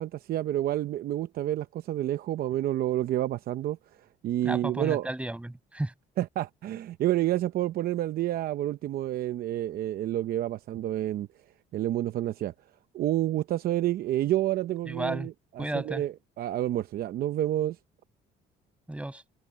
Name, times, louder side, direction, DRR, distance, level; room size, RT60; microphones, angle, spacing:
voice 1, 0.0-3.8 4.2-5.1 6.2-11.3 11.7-12.5 12.9-17.8, right 13 dB, 60° right, 0.8 m, -29 dB
voice 2, 4.4-5.9 14.9-15.3 15.6-16.0 18.9-19.2, right 1 dB, 5° right, 7.2 m, -33 dB
cardioid pair, 110°, 17 cm